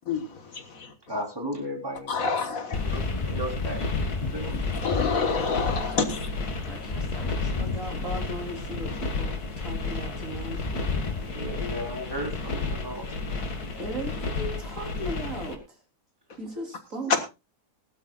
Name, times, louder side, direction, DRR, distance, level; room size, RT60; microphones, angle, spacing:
voice 1, 1.1-2.3 2.7-4.6 11.2-13.4, equal, 15° right, 1 dB, 4.1 m, -35 dB
voice 2, 2.1-2.8 4.8-6.2, left 5 dB, 65° left, 8 dB, 1.9 m, -27 dB
sound 1, 2.7-15.6, left 3 dB, 85° left, 2.5 m, -32 dB
sound 2, 2.7-11.3, left 4 dB, 30° left, 1.0 m, -34 dB
voice 3, 5.7-6.2 6.7-10.9 13.8-15.8 16.4-17.1, right 1 dB, 55° right, 2 dB, 4.1 m, -37 dB
20.0 x 12.0 x 2.4 m, 0.26 s
omnidirectional pair, 1.6 m